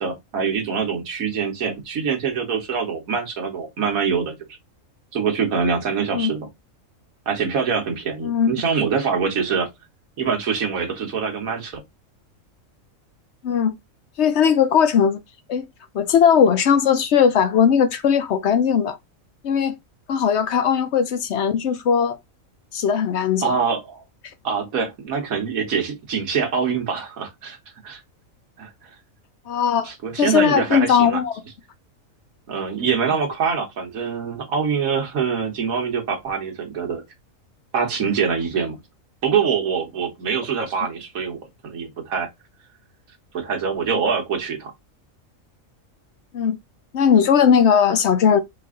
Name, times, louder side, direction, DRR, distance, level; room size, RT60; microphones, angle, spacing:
voice 1, 0.0-4.3 5.1-6.5 7.3-9.7 10.2-11.8 23.4-24.0 24.4-27.6 27.8-28.0 28.6-28.7 29.8-31.2 32.5-37.0 37.7-38.8 39.2-42.3 43.3-44.7, right 6 dB, 90° right, 1.7 m, -24 dB
voice 2, 14.2-15.2 15.5-15.7 15.9-19.0 19.4-19.8 20.1-22.2 22.7-23.5 29.5-29.9 30.2-31.3 46.3-46.6 46.9-48.4, left 7 dB, 65° left, 0.8 m, -18 dB
4.7 x 2.5 x 3.7 m
omnidirectional pair, 1.4 m